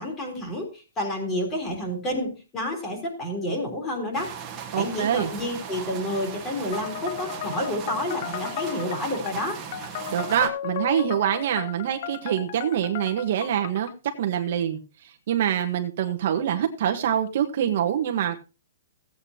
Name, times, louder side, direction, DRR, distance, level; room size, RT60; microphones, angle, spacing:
voice 1, 0.0-4.3 4.8-9.6, left 1 dB, 15° left, 0 dB, 3.4 m, -29 dB
sound 1, 4.1-10.5, right 7 dB, 15° right, 1.5 m, -38 dB
voice 2, 4.7-5.3 10.1-13.9 14.2-14.8 15.0-18.4, right 10 dB, 45° right, 4 dB, 1.2 m, -25 dB
sound 2, 6.7-13.9, left 11 dB, 35° left, 0.6 m, -35 dB
16.0 x 8.6 x 2.8 m, 0.30 s
hypercardioid pair, 170°, 0 cm